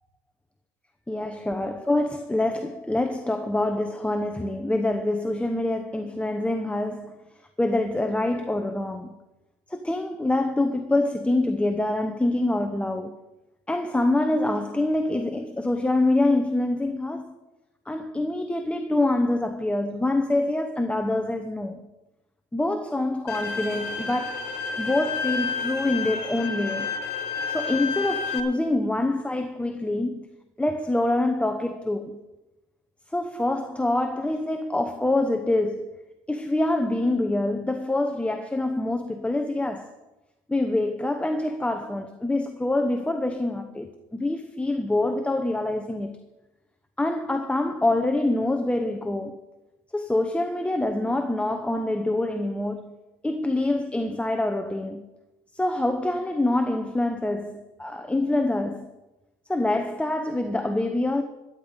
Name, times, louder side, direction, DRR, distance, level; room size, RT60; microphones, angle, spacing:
voice 1, 1.1-7.1 7.6-9.1 9.7-13.2 13.7-17.3 17.9-21.8 22.5-24.4 24.8-26.9 27.5-30.2 30.6-32.2 33.1-35.9 36.3-39.9 40.5-46.2 47.0-49.4 49.9-53.0 53.2-55.0 55.6-58.9 59.5-61.2, left 2 dB, 5° left, 0.8 m, -25 dB
Bowed string instrument, 23.3-28.4, left 5 dB, 90° left, 1.5 m, -30 dB
13.5 x 10.5 x 5.2 m
cardioid pair, 110°, 17 cm